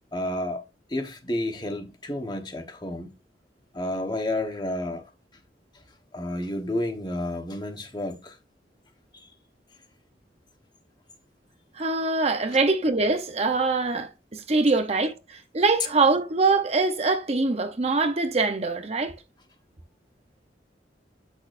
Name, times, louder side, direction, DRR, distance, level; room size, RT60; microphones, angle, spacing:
voice 1, 0.1-3.1 3.7-5.0 5.3-5.4 5.7-5.8 6.1-8.4 9.1-9.3 12.5-12.6, left 1 dB, 25° left, 1.1 m, -31 dB
voice 2, 11.8-19.1, right 3 dB, 35° right, 0.8 m, -23 dB
8.4 x 6.4 x 2.5 m
head